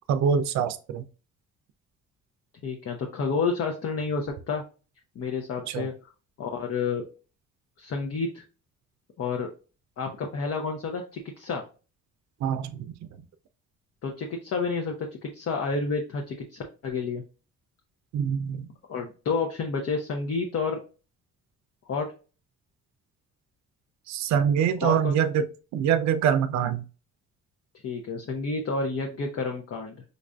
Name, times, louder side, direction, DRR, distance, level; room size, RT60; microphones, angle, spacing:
voice 1, 0.1-1.0 5.7-5.9 12.4-12.9 18.1-18.7 24.1-25.5 25.7-26.8, right 8 dB, 65° right, 0.5 m, -24 dB
voice 2, 2.6-4.6 5.2-6.1 6.4-7.0 7.8-8.4 9.2-9.5 10.0-11.6 14.0-17.2 18.9-20.8 21.9-22.1 24.8-25.1 27.8-30.0, left 4 dB, 50° left, 0.7 m, -30 dB
5.2 x 2.4 x 2.2 m
cardioid pair, 90°, 30 cm